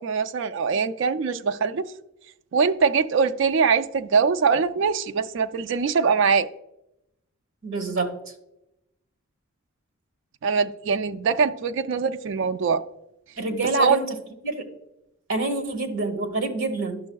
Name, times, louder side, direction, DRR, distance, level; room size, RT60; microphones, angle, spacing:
voice 1, 0.0-1.9 2.5-6.5 10.4-12.8 13.8-14.0, right 5 dB, 60° right, 0.3 m, -22 dB
voice 2, 7.6-8.1 13.4-14.1 14.4-14.7 15.3-17.0, right 2 dB, 75° right, 1.1 m, -26 dB
11.5 x 6.1 x 2.3 m
head